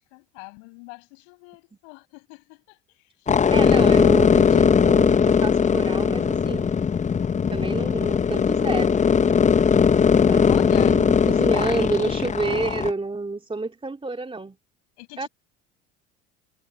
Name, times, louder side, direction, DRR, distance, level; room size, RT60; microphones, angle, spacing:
voice 1, 0.1-3.3 3.6-4.0 10.5-11.0 15.0-15.3, left 37 dB, 75° left, 7.7 m, -42 dB
sound 1, 3.3-12.9, left 6 dB, 20° left, 0.7 m, -19 dB
voice 2, 3.5-6.8 7.5-9.0 10.3-14.6 15.2-15.3, right 3 dB, 15° right, 3.2 m, -29 dB
hypercardioid pair, 70°, 34 cm